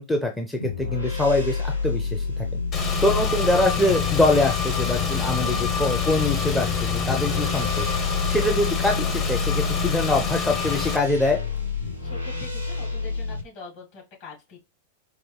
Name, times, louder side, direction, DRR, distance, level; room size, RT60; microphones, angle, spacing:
voice 1, 0.0-2.5 3.0-7.9 8.3-11.4, left 2 dB, 5° left, 1 dB, 0.5 m, -24 dB
sound 1, 0.6-13.4, left 5 dB, 90° left, 0.8 m, -29 dB
Car / Engine, 2.7-11.0, left 6 dB, 30° left, 0.9 m, -27 dB
voice 2, 11.8-14.6, left 4 dB, 45° left, -3 dB, 2.3 m, -43 dB
4.7 x 2.2 x 3.2 m, 0.25 s
figure-of-eight pair, 90°, 0 cm